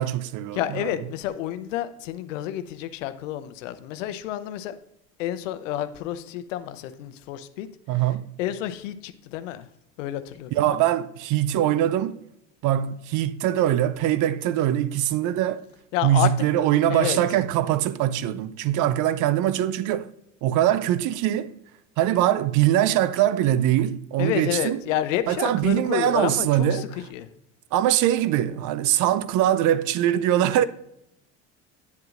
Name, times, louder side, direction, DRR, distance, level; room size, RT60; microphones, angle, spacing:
voice 1, 0.0-0.9 7.9-8.3 10.5-12.2 12.6-15.6 16.0-20.1 20.4-21.5 22.0-24.8 25.3-26.9 27.7-30.6, right 12 dB, 55° right, 0.6 m, -22 dB
voice 2, 0.5-4.8 5.2-7.7 7.9-8.0 8.4-9.7 10.0-10.8 15.9-16.3 16.9-17.2 24.2-27.3, left 12 dB, 80° left, 0.7 m, -29 dB
9.3 x 7.7 x 2.5 m
hypercardioid pair, 80°, 38 cm